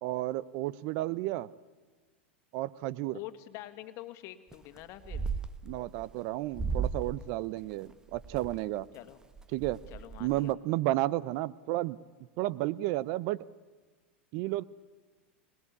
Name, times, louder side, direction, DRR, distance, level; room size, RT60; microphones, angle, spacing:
voice 1, 0.0-1.5 2.5-3.2 5.7-8.9 9.5-9.8 10.2-12.0 12.4-13.5 14.3-14.6, right 16 dB, 55° right, 20 dB, 0.7 m, -32 dB
voice 2, 3.1-5.3 8.9-9.2 9.9-10.5, left 14 dB, 50° left, 9 dB, 2.0 m, -45 dB
sound 1, 4.5-4.8 5.0-6.1 6.5-7.2 7.6-8.6 9.1-9.2 9.4-10.5, right 5 dB, 10° right, 1.2 m, -35 dB
25.0 x 20.0 x 8.5 m, 1.4 s
hypercardioid pair, 100°, 6 cm